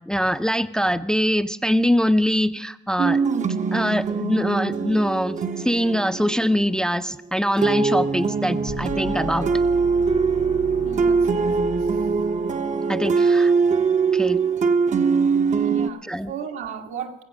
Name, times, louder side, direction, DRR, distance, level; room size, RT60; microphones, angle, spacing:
voice 1, 0.1-3.2 3.7-9.5 12.9-13.5 14.1-14.4 16.0-16.3, equal, 5° left, 11 dB, 0.4 m, -23 dB
sound 1, 3.0-7.0 7.6-15.9, right 5 dB, 40° right, 0.6 m, -22 dB
sound 2, 8.7-12.7, left 6 dB, 90° left, 1.7 m, -36 dB
voice 2, 10.8-11.9 15.6-17.1, right 7 dB, 85° right, 2 dB, 1.6 m, -35 dB
19.5 x 8.1 x 6.2 m, 0.85 s
cardioid pair, 90°, 20 cm